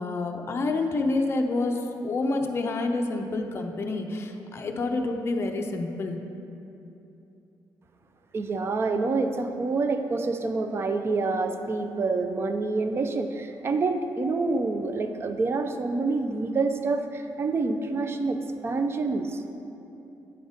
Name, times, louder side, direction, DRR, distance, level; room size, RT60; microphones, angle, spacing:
voice 1, 0.0-6.2, left 2 dB, 35° left, 3 dB, 0.5 m, -28 dB
voice 2, 8.3-19.4, right 3 dB, 30° right, 7 dB, 0.4 m, -27 dB
8.7 x 4.0 x 5.0 m, 2.9 s
cardioid pair, 140°, 8 cm